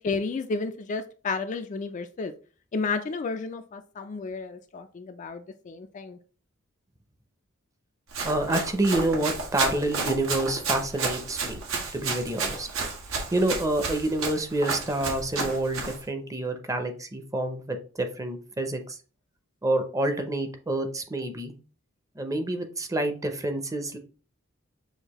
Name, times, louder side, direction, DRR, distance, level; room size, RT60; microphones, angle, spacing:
voice 1, 0.0-2.3 2.7-6.2, left 4 dB, 35° left, 8 dB, 0.3 m, -32 dB
Run, 8.1-16.0, right 4 dB, 90° right, 1.2 m, -32 dB
voice 2, 8.2-11.6 11.9-12.7 13.3-19.0 19.6-21.5 22.1-24.0, right 1 dB, 15° right, 6 dB, 0.6 m, -28 dB
6.4 x 2.6 x 3.0 m, 0.38 s
head